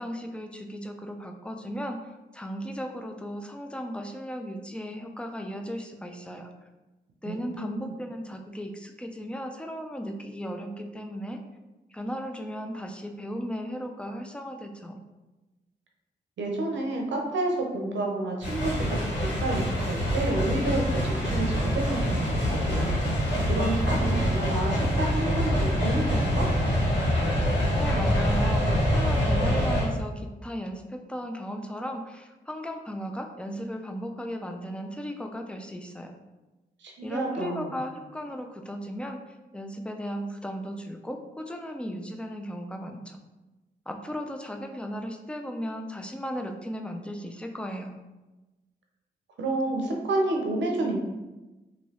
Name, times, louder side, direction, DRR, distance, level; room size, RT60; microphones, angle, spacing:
voice 1, 0.0-2.0 2.3-6.5 7.2-11.4 11.9-15.0 27.8-36.1 37.0-43.2 43.9-48.0, equal, 5° left, 4 dB, 0.4 m, -36 dB
voice 2, 7.2-7.9 16.4-19.1 19.4-26.5 36.8-37.7 49.4-51.0, right 2 dB, 85° right, 1 dB, 0.6 m, -30 dB
sound 1, 18.4-29.8, equal, 75° left, 1.4 m, -25 dB
3.0 x 2.7 x 2.8 m, 1.1 s
cardioid pair, 45°, 18 cm